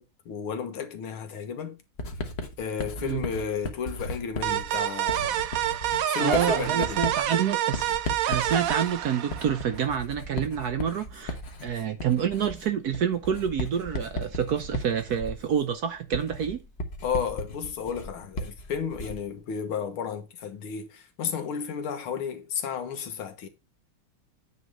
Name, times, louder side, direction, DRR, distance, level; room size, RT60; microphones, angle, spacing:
voice 1, 0.0-1.8 2.6-5.5 6.1-7.0 17.0-23.5, left 7 dB, 90° left, 2.1 m, -33 dB
Writing, 2.0-19.3, left 1 dB, 40° left, 1.1 m, -36 dB
sound 1, 4.4-9.8, right 12 dB, 85° right, 0.7 m, -28 dB
voice 2, 5.9-16.6, right 8 dB, 65° right, 1.0 m, -28 dB
9.3 x 3.2 x 6.4 m
omnidirectional pair, 2.2 m